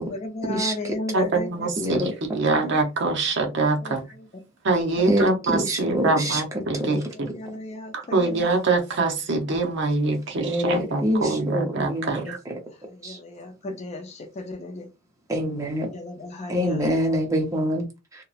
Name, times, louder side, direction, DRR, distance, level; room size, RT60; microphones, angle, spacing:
voice 1, 0.1-1.7 2.5-2.8 3.8-4.3 6.0-6.4 7.1-8.5 12.2-12.4 12.8-14.9 15.9-16.9, left 2 dB, 30° left, 0.4 m, -35 dB
voice 2, 1.1-4.0 4.6-7.3 7.9-12.4, right 3 dB, 60° right, 0.6 m, -24 dB
voice 3, 1.8-2.1 5.1-6.4 6.9-7.0 10.4-12.5 13.0-13.2 15.3-15.9 16.5-17.9, equal, 15° right, 0.6 m, -25 dB
2.9 x 2.0 x 2.4 m
head